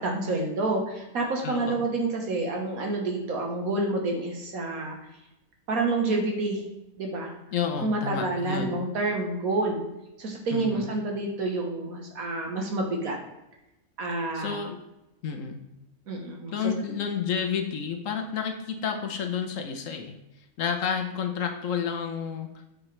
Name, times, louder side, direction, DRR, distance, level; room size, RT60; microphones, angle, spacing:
voice 1, 0.0-5.0 5.7-6.6 7.0-7.3 7.8-9.8 10.2-13.2 14.0-14.6 16.1-16.5, right 2 dB, 75° right, 1 dB, 1.7 m, -28 dB
voice 2, 1.4-1.8 7.5-8.8 10.5-10.9 14.3-14.8 15.2-15.6 16.5-20.2 20.6-22.5, left 7 dB, 65° left, 6 dB, 1.1 m, -30 dB
8.7 x 4.9 x 3.2 m, 0.93 s
omnidirectional pair, 1.5 m